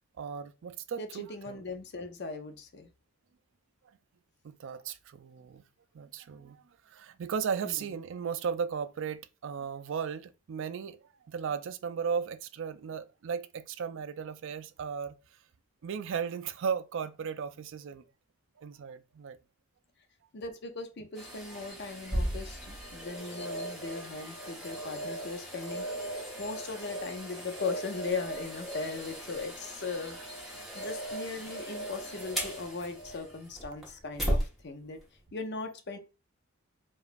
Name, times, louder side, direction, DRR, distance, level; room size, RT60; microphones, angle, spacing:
voice 1, 0.2-1.6 4.4-5.6 5.9-11.0 11.3-15.2 15.8-18.0 18.6-19.4 21.5-21.6, right 6 dB, 55° right, 0.3 m, -36 dB
voice 2, 1.0-2.9 7.6-7.8 20.3-25.9 26.1-35.0 35.3-36.0, left 3 dB, 50° left, 0.5 m, -39 dB
sound 1, 21.2-34.5 35.0-35.1, right 1 dB, ahead, 1.1 m, -37 dB
4.9 x 2.4 x 2.5 m
head